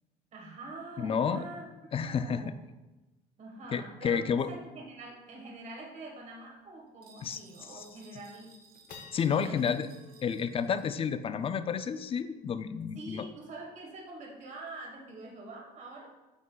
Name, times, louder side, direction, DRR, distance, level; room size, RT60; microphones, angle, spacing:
voice 1, 0.3-1.7 2.0-2.5 3.4-8.5 9.3-9.7 12.9-16.1, right 2 dB, 45° right, 0 dB, 1.4 m, -45 dB
voice 2, 1.0-1.4 1.9-2.5 3.7-4.5 7.2-7.4 9.1-9.9 10.2-13.2, left 7 dB, 35° left, 12 dB, 0.3 m, -30 dB
sound 1, 5.4-5.5 5.7-5.8 6.2-6.5 7.0-7.1 7.6-8.0 8.4-15.0, left 4 dB, 55° left, 0.9 m, -57 dB
sound 2, 7.0-11.2, right 4 dB, 60° right, 1.0 m, -59 dB
7.9 x 5.5 x 2.3 m, 1.1 s
cardioid pair, 110°, 17 cm